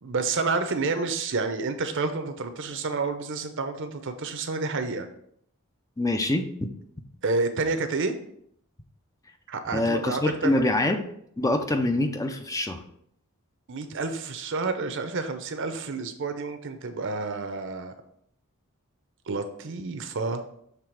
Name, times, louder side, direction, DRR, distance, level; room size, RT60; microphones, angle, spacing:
voice 1, 0.0-5.1 7.2-8.1 9.5-10.6 13.7-17.9 19.3-20.4, right 3 dB, 60° right, 8 dB, 0.7 m, -29 dB
voice 2, 6.0-6.4 9.7-11.0 11.4-12.8, left 2 dB, 15° left, 6 dB, 0.5 m, -25 dB
6.7 x 3.4 x 4.6 m, 0.69 s
head